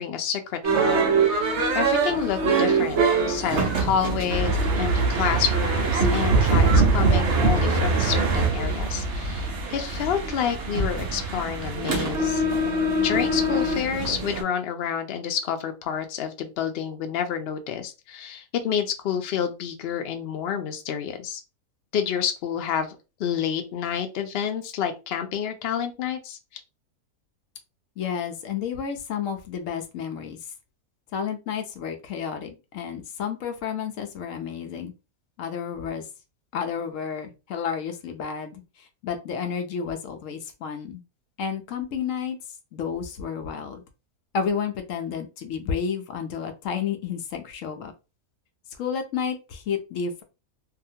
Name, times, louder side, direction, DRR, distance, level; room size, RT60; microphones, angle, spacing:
voice 1, 0.0-1.5 1.7-3.0 3.3-12.4 13.0-21.4 21.9-26.4, left 8 dB, 90° left, 6 dB, 0.5 m, -29 dB
sound 1, 0.6-14.4, right 3 dB, 55° right, 0.9 m, -23 dB
voice 2, 28.0-30.4 31.1-34.9 35.4-36.1 36.5-41.0 41.4-42.4 42.7-43.8 44.3-47.9 48.8-50.2, left 7 dB, 70° left, 6 dB, 0.8 m, -31 dB
2.8 x 2.4 x 2.7 m, 0.29 s
omnidirectional pair, 1.6 m